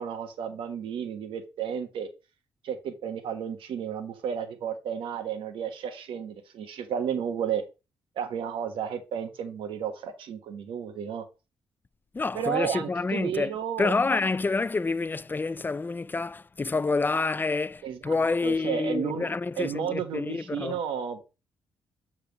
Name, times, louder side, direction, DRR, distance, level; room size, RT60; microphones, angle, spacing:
voice 1, 0.0-2.1 2.6-7.6 8.2-11.3 12.3-13.9 17.8-18.1 18.4-19.3 19.6-21.3, right 8 dB, 75° right, 1.3 m, -32 dB
voice 2, 12.1-13.5 13.8-20.8, left 3 dB, 20° left, 0.4 m, -28 dB
6.9 x 3.7 x 4.6 m
hypercardioid pair, 50°, 9 cm